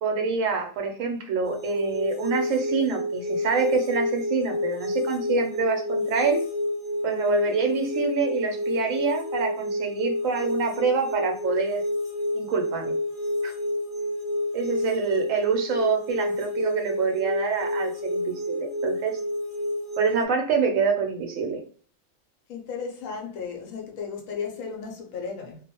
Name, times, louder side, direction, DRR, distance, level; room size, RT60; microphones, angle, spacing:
voice 1, 0.0-6.4 7.0-11.8 12.3-12.9 13.4-13.5 14.5-19.1 20.0-21.6, right 5 dB, 75° right, 1.0 m, -26 dB
sound 1, 1.4-20.2, left 1 dB, 45° left, 0.8 m, -29 dB
voice 2, 22.5-25.6, left 5 dB, 80° left, 1.1 m, -34 dB
2.5 x 2.1 x 2.8 m
omnidirectional pair, 1.4 m